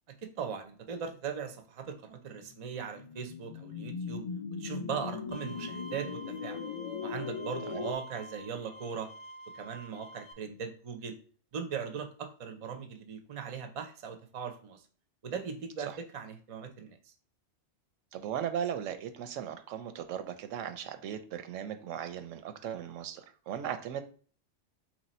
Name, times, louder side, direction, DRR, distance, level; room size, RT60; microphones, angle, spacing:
voice 1, 0.4-4.2 4.6-6.6 7.0-9.1 9.5-11.2 11.5-14.8 15.2-17.1, right 6 dB, 45° right, 6 dB, 0.4 m, -39 dB
sound 1, 2.4-7.9, left 6 dB, 70° left, 0.3 m, -39 dB
Bowed string instrument, 5.3-10.3, right 1 dB, 55° left, 0.7 m, -48 dB
voice 2, 18.1-24.0, right 9 dB, 90° right, 9 dB, 1.0 m, -37 dB
3.0 x 2.7 x 4.2 m, 0.43 s
omnidirectional pair, 1.3 m